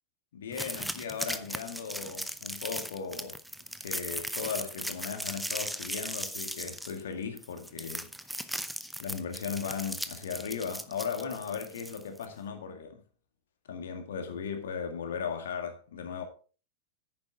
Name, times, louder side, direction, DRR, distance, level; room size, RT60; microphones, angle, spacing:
voice 1, 0.3-3.4 3.8-8.1 9.0-13.0 13.6-16.2, left 6 dB, 60° left, 2.1 m, -37 dB
sound 1, 0.5-12.3, equal, ahead, 0.8 m, -38 dB
10.5 x 9.4 x 3.6 m
figure-of-eight pair, 90°, 0 cm